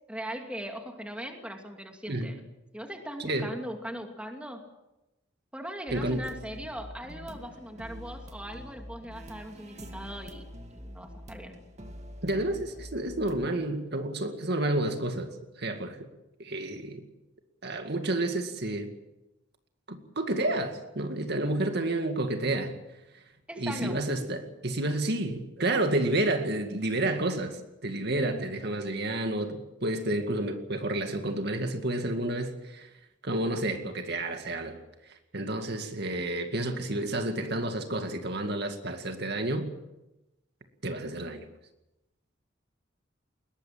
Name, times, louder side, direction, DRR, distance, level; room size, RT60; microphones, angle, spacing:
voice 1, 0.1-2.4 2.7-4.6 5.5-10.5 10.7-11.6 23.5-24.0 28.1-28.4, equal, 5° right, 3 dB, 2.6 m, -39 dB
voice 2, 3.2-3.5 5.9-6.2 12.2-16.1 16.4-17.0 17.6-18.9 19.9-22.8 23.6-32.9 33.2-34.8 35.3-39.7 40.8-41.4, right 1 dB, 60° right, 6 dB, 2.2 m, -30 dB
sound 1, 5.9-13.5, equal, 35° right, 2.2 m, -45 dB
21.5 x 19.5 x 7.6 m, 0.96 s
head